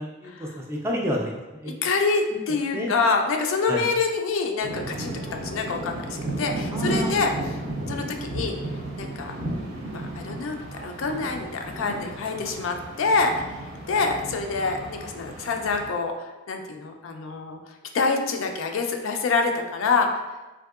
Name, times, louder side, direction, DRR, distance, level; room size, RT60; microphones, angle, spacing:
voice 1, 0.0-1.7 2.7-2.9 3.7-3.9 6.7-7.2, equal, 15° right, -1 dB, 0.3 m, -30 dB
voice 2, 1.6-7.6 7.9-8.6 9.0-9.4 9.9-13.6 13.9-17.6 17.9-20.2, left 4 dB, 75° left, 4 dB, 0.4 m, -26 dB
sound 1, 4.6-15.9, right 2 dB, 90° right, 0.7 m, -34 dB
3.6 x 2.6 x 2.4 m, 1.1 s
head